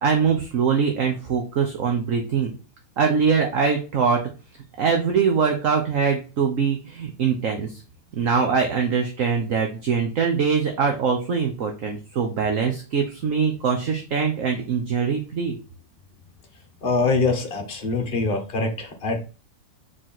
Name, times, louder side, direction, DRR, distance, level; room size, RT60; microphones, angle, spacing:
voice 1, 0.0-2.5 3.0-4.2 4.8-7.8 8.1-15.6, right 6 dB, 55° right, 3 dB, 1.3 m, -23 dB
voice 2, 16.8-19.2, left 3 dB, 35° left, 3 dB, 1.6 m, -24 dB
4.8 x 4.5 x 5.8 m, 0.35 s
omnidirectional pair, 1.8 m